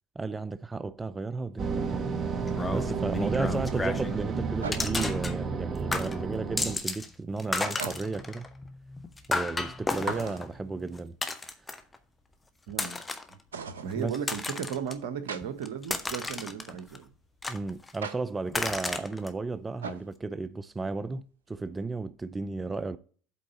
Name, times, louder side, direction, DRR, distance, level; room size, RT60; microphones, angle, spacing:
voice 1, 0.2-8.4 9.3-11.2 14.0-14.1 17.5-23.0, right 3 dB, 20° right, 0.5 m, -34 dB
sound 1, 1.6-6.8, right 5 dB, 35° right, 1.1 m, -32 dB
sound 2, 2.0-2.1 4.6-5.2 7.7-8.3 10.0-10.6 13.5-13.9 15.3-15.4 18.0-18.2 19.8-20.1, right 5 dB, 85° right, 0.8 m, -38 dB
sound 3, 2.5-4.2 4.7-5.7 5.9-7.1 7.4-12.0 12.7-13.3 13.9-14.9 15.4-17.0 17.4-18.1 18.5-19.3, left 3 dB, 15° left, 1.0 m, -33 dB
voice 2, 12.7-13.0 13.3-17.1, right 7 dB, 70° right, 1.2 m, -36 dB
8.4 x 3.9 x 6.9 m
hypercardioid pair, 75°, 0 cm